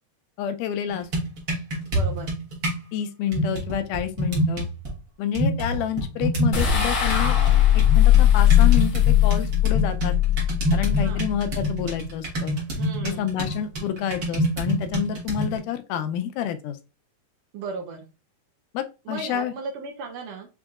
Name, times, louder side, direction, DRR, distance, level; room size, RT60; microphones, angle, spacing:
voice 1, 0.4-1.1 2.9-4.7 5.2-7.4 7.7-10.1 10.7-12.6 13.0-16.8 18.7-19.5, left 9 dB, 80° left, 8 dB, 2.1 m, -29 dB
sound 1, 0.9-2.8 3.3-4.9 5.3-6.8 7.1-15.6, right 1 dB, 55° right, 1.0 m, -27 dB
voice 2, 1.9-2.3 11.0-11.2 12.8-13.4 17.5-18.1 19.1-20.5, right 4 dB, 85° right, 3 dB, 1.5 m, -36 dB
sound 2, 6.5-11.9, left 12 dB, 60° left, 1.2 m, -19 dB
6.0 x 2.7 x 2.4 m, 0.30 s
omnidirectional pair, 3.8 m